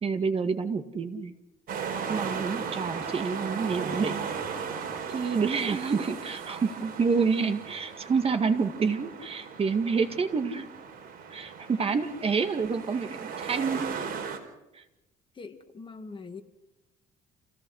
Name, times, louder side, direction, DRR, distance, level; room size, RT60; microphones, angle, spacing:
voice 1, 0.0-1.3 2.1-4.3 5.1-10.7 11.3-14.0 14.7-14.8, right 5 dB, 35° right, 8 dB, 2.0 m, -28 dB
sound 1, 1.7-14.4, right 6 dB, 60° right, 4.5 m, -37 dB
voice 2, 15.3-16.4, left 4 dB, 30° left, 6 dB, 2.2 m, -42 dB
28.5 x 17.0 x 6.5 m, 0.95 s
cardioid pair, 110°, 17 cm